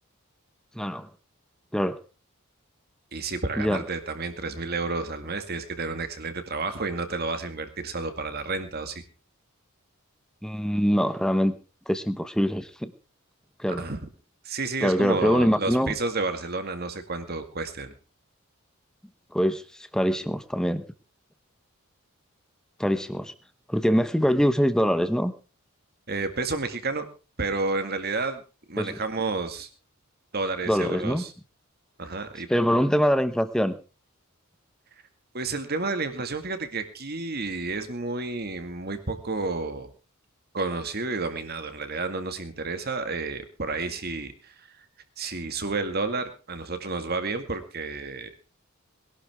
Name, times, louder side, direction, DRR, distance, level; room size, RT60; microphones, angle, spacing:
voice 1, 0.7-1.1 1.7-2.0 3.6-3.8 10.4-11.6 11.9-12.9 13.6-13.8 14.8-15.9 19.3-20.8 22.8-23.3 23.7-25.3 28.8-29.0 30.7-31.2 32.5-33.8, equal, 5° left, 11 dB, 1.0 m, -24 dB
voice 2, 3.1-9.0 13.7-14.1 14.4-17.9 26.1-27.1 27.4-28.4 28.7-29.7 30.3-31.3 32.0-32.5 35.3-39.9 40.5-44.9 45.2-48.3, right 3 dB, 45° right, 8 dB, 2.0 m, -31 dB
21.5 x 11.5 x 3.6 m, 0.33 s
head